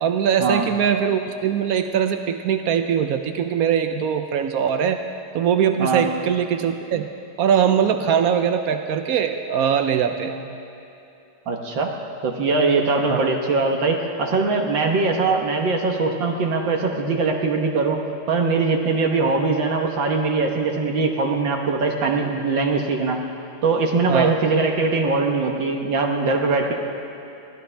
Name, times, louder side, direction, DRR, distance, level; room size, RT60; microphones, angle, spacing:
voice 1, 0.0-5.0 5.3-7.1 7.4-10.3 13.1-13.3 24.1-24.4, right 8 dB, 85° right, 7 dB, 0.8 m, -21 dB
voice 2, 11.5-11.9 12.2-18.0 18.3-23.2 23.6-26.7, right 3 dB, 65° right, 2 dB, 1.8 m, -21 dB
21.5 x 15.5 x 3.4 m, 2.9 s
omnidirectional pair, 2.3 m